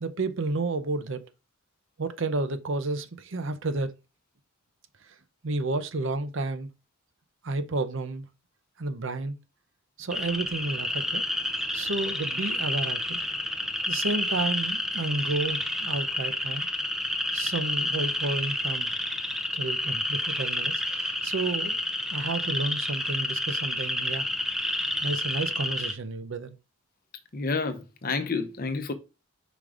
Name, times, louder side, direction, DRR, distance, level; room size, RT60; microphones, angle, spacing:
voice 1, 0.0-1.2 2.0-3.9 5.0-5.2 5.4-6.7 7.4-8.3 8.8-9.4 10.0-11.2 11.7-13.2 13.9-16.7 17.3-18.9 19.5-21.8 22.1-24.3 25.0-26.6, right 3 dB, 60° right, 0.7 m, -31 dB
sound 1, 10.1-25.9, left 1 dB, ahead, 0.5 m, -30 dB
voice 2, 27.3-28.9, left 4 dB, 45° left, 0.8 m, -29 dB
5.1 x 3.7 x 4.9 m
head